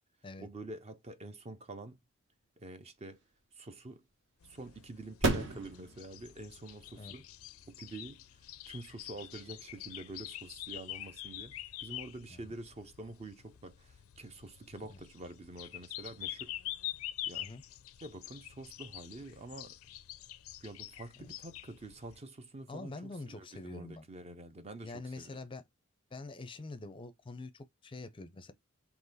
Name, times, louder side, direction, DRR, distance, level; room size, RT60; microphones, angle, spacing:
voice 1, 0.4-2.0 2.6-3.2 3.6-4.0 4.4-7.2 7.7-8.2 8.7-11.5 11.8-16.5 17.3-17.5 18.0-19.7 20.6-25.4, right 2 dB, 30° right, 0.5 m, -47 dB
sound 1, 2.6-9.9, right 2 dB, 60° right, 1.1 m, -39 dB
sound 2, 4.4-22.2, left 14 dB, 90° left, 0.4 m, -46 dB
voice 2, 22.7-24.1 24.8-25.6 26.1-28.5, left 2 dB, 25° left, 0.5 m, -45 dB
3.9 x 2.9 x 4.0 m
head